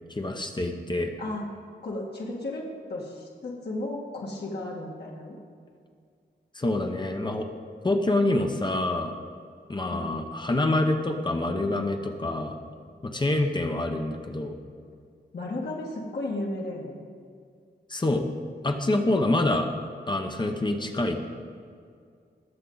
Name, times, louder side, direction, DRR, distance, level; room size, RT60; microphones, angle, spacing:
voice 1, 0.1-1.1 6.5-7.5 7.8-9.1 9.7-12.6 13.0-14.6 17.9-18.3 18.6-19.7 20.1-21.2, left 2 dB, 25° left, 4 dB, 0.8 m, -26 dB
voice 2, 1.2-1.5 1.8-5.4 9.9-10.2 15.3-17.0, left 2 dB, 65° left, -3 dB, 2.0 m, -34 dB
20.5 x 7.3 x 4.0 m, 2.2 s
wide cardioid pair, 175°, 18 cm